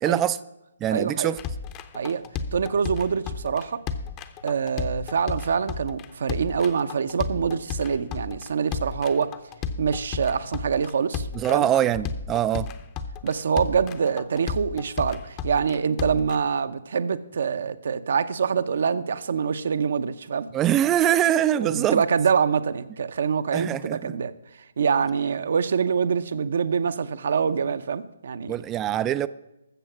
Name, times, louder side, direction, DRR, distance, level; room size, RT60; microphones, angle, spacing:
voice 1, 0.0-0.4 0.8-1.4 11.3-12.7 20.5-22.0 23.5-24.2 28.5-29.3, right 11 dB, 20° right, 16 dB, 0.3 m, -23 dB
voice 2, 0.9-1.3 1.9-2.2 2.5-3.8 4.4-9.3 9.8-11.7 13.2-20.5 21.6-24.3 24.8-28.6, right 6 dB, 60° right, 13 dB, 0.7 m, -25 dB
Savanna stomp groove, 1.4-16.4, left 6 dB, 25° left, 0.7 m, -33 dB
13.5 x 7.2 x 6.0 m, 0.93 s
figure-of-eight pair, 140°, 0 cm